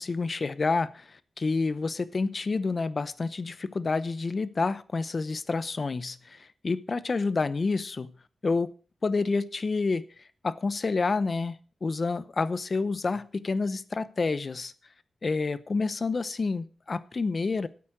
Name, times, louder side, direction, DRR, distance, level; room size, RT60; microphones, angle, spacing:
voice 1, 0.0-8.1 8.4-8.7 9.0-10.0 10.4-14.7 15.2-17.7, left 4 dB, 45° left, 16 dB, 0.8 m, -29 dB
13.0 x 8.6 x 6.1 m, 0.41 s
cardioid pair, 85°, 0 cm